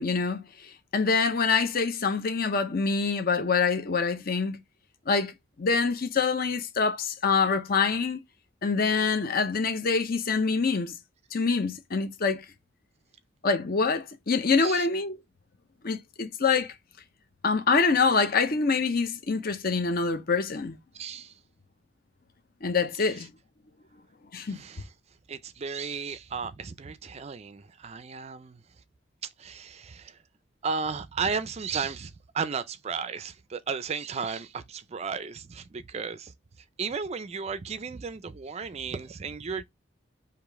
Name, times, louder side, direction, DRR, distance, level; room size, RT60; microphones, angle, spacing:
voice 1, 0.0-4.6 5.1-8.2 8.6-11.0 11.3-12.4 13.4-15.2 15.8-16.7 17.4-20.8 22.6-23.3 24.3-24.6, left 4 dB, 50° left, 0.7 m, -25 dB
voice 2, 20.9-21.3 23.0-23.1 24.5-24.9 25.3-28.6 29.2-30.2 30.6-36.3 36.8-39.6, right 5 dB, 35° right, 0.4 m, -34 dB
4.9 x 2.9 x 3.5 m
head